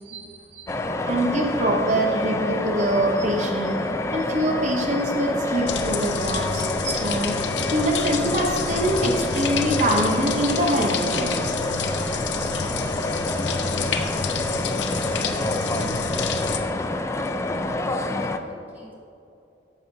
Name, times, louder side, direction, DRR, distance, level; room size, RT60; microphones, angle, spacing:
voice 1, 0.0-0.7 1.0-3.7 4.1-7.4 7.7-11.4, right 1 dB, 40° right, 1 dB, 0.8 m, -24 dB
sound 1, 0.7-18.4, left 2 dB, 15° left, 0.3 m, -27 dB
sound 2, 5.7-16.6, left 5 dB, 75° left, 0.6 m, -29 dB
voice 2, 16.3-18.9, equal, 10° right, -5 dB, 1.5 m, -50 dB
13.5 x 6.2 x 2.7 m, 2.6 s
head